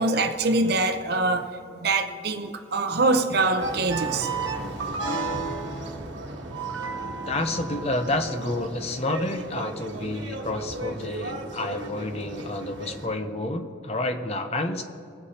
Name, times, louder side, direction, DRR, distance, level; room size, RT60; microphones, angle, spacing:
voice 1, 0.0-1.5 1.8-4.3, right 3 dB, 55° right, 0.7 m, -24 dB
sound 1, 3.6-13.1, right 3 dB, 75° right, 1.2 m, -33 dB
voice 2, 7.3-14.8, left 2 dB, 35° left, 0.6 m, -29 dB
21.0 x 8.1 x 2.9 m
head